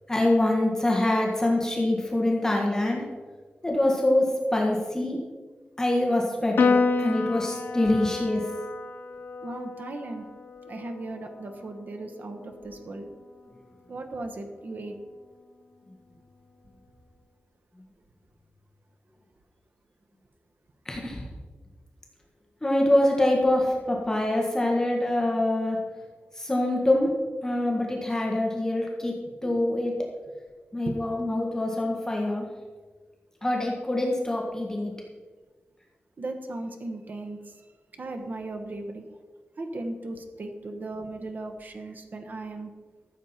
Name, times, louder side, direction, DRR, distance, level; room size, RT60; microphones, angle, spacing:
voice 1, 0.1-3.0 3.6-5.2 5.8-8.4 20.8-21.2 22.6-25.8 26.4-27.1 27.4-29.1 29.4-29.9 30.7-32.5 33.4-34.9, left 1 dB, 15° left, -1 dB, 1.6 m, -25 dB
Piano, 6.6-13.2, left 4 dB, 90° left, 0.7 m, -30 dB
voice 2, 9.4-10.3 10.6-13.1 13.9-15.0 29.2-29.6 30.8-31.0 36.2-37.7 37.9-39.0 39.6-42.7, right 2 dB, 55° right, 5 dB, 1.3 m, -37 dB
14.0 x 7.3 x 4.4 m, 1.4 s
wide cardioid pair, 130°, 4 cm